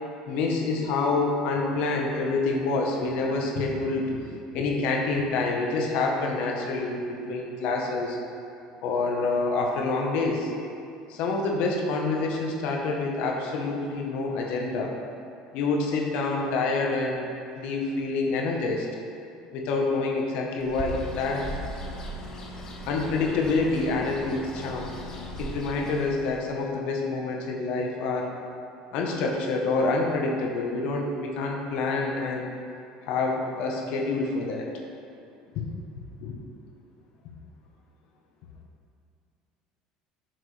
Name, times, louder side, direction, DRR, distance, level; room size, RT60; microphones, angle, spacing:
voice 1, 0.3-4.2 4.5-8.2 8.8-10.5 11.1-15.0 15.5-17.3 17.6-18.9 19.5-21.5 22.9-24.9 25.4-28.4 28.9-32.5 33.1-34.7 35.5-35.6 36.2-36.3, left 3 dB, 65° left, 0 dB, 1.0 m, -27 dB
Bird, 20.6-26.5, left 1 dB, 30° left, 1.1 m, -38 dB
9.4 x 6.0 x 3.3 m, 2.6 s
cardioid pair, 135°, 2 cm